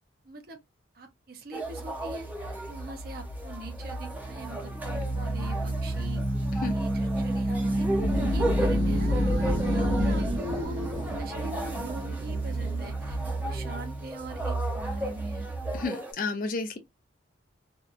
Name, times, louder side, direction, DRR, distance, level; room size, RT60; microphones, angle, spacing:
voice 1, 0.2-0.6 0.9-2.3 2.7-6.2 6.7-7.9 8.3-10.8 11.2-15.5, right 2 dB, 50° right, 0.6 m, -43 dB
sound 1, 1.5-16.1, right 1 dB, 10° right, 0.6 m, -36 dB
sound 2, 1.7-15.8, right 1 dB, 75° right, 1.1 m, -29 dB
voice 2, 15.7-16.8, left 3 dB, 45° left, 0.6 m, -31 dB
2.8 x 2.3 x 2.3 m
head